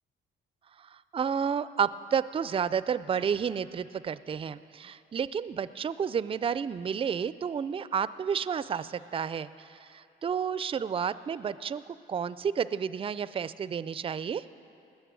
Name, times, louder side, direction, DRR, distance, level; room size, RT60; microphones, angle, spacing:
voice 1, 0.8-11.8 12.1-14.4, right 7 dB, 30° right, 16 dB, 0.4 m, -31 dB
19.5 x 6.8 x 7.4 m, 2.6 s
cardioid pair, 90°, 20 cm